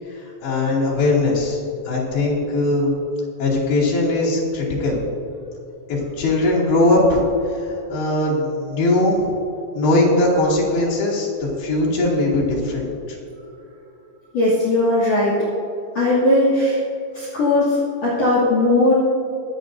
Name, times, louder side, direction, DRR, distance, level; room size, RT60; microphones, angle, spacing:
voice 1, 0.1-2.9 3.4-5.0 5.9-7.2 7.5-9.3 9.7-13.2, left 2 dB, 65° left, -6 dB, 4.4 m, -20 dB
voice 2, 14.3-15.3 15.9-16.8 17.1-18.9, left 2 dB, 45° left, -7 dB, 3.1 m, -18 dB
24.5 x 8.9 x 2.7 m, 2.8 s
omnidirectional pair, 4.9 m